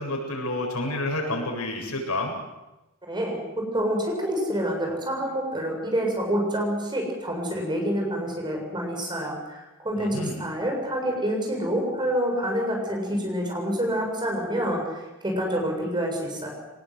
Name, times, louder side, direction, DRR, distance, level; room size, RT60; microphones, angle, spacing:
voice 1, 0.0-2.3 10.0-10.4, left 2 dB, 85° left, 1 dB, 7.8 m, -29 dB
voice 2, 3.0-16.5, equal, 20° right, 1 dB, 7.5 m, -27 dB
24.5 x 20.0 x 8.1 m, 1.0 s
head